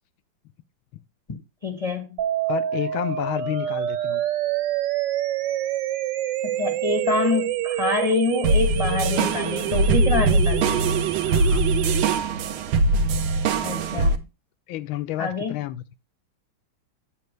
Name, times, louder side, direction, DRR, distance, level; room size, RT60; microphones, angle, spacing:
voice 1, 1.3-2.1 6.4-10.9 13.6-14.2 15.2-15.5, left 3 dB, 30° left, 0.6 m, -26 dB
sound 1, 2.2-12.2, right 12 dB, 70° right, 1.2 m, -27 dB
voice 2, 2.5-4.2 11.3-11.7 14.7-15.8, left 13 dB, 85° left, 1.4 m, -30 dB
sound 2, 8.4-14.2, right 3 dB, 90° right, 1.6 m, -22 dB
8.0 x 7.3 x 3.1 m
omnidirectional pair, 2.2 m